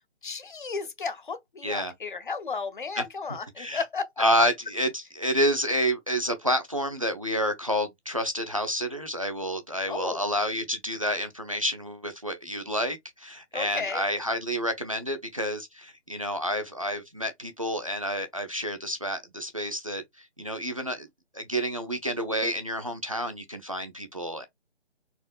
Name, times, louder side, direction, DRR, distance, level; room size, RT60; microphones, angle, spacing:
voice 1, 0.2-4.2 9.9-10.3 13.5-14.0, left 4 dB, 45° left, 0.5 m, -34 dB
voice 2, 1.6-1.9 3.0-3.1 3.6-3.8 4.2-21.1 21.3-24.5, equal, 30° right, 0.4 m, -29 dB
4.1 x 2.4 x 2.2 m
figure-of-eight pair, 155°, 35 cm